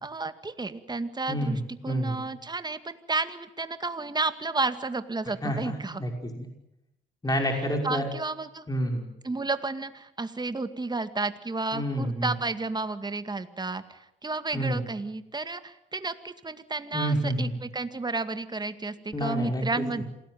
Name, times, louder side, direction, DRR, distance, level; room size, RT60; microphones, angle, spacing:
voice 1, 0.0-6.0 7.3-7.4 7.8-8.6 9.2-20.0, right 3 dB, 20° right, 10 dB, 2.1 m, -32 dB
voice 2, 1.3-2.2 5.4-6.5 7.2-8.1 8.7-9.1 11.7-12.3 14.5-14.9 16.9-17.6 19.1-19.7 20.0-20.1, equal, 20° left, 3 dB, 5.6 m, -29 dB
27.5 x 19.0 x 9.4 m, 0.83 s
cardioid pair, 90°, 20 cm